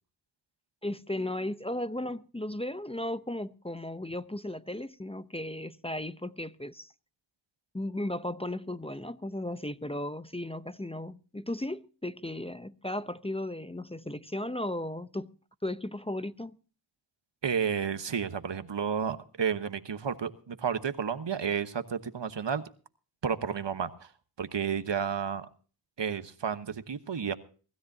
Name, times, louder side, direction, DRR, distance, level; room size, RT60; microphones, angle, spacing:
voice 1, 0.8-6.9 7.7-15.3 15.6-16.6, left 1 dB, 15° left, 0.7 m, -35 dB
voice 2, 17.4-22.6 23.2-24.1 24.4-25.5 26.0-27.3, right 7 dB, 70° right, 1.2 m, -31 dB
24.0 x 13.0 x 2.7 m
cardioid pair, 40°, 45 cm